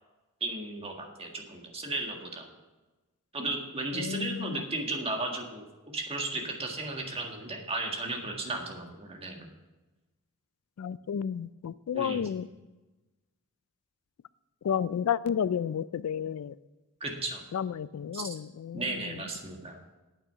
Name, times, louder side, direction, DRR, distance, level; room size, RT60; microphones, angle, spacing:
voice 1, 0.4-2.5 3.3-5.6 5.9-9.5 11.9-12.2 17.0-17.4 18.1-18.3 18.7-19.8, right 2 dB, 25° right, 2 dB, 1.7 m, -35 dB
voice 2, 3.9-4.6 10.8-12.5 14.6-16.5 17.5-19.2, left 8 dB, 70° left, 18 dB, 0.3 m, -32 dB
8.9 x 8.8 x 6.7 m, 1.1 s
head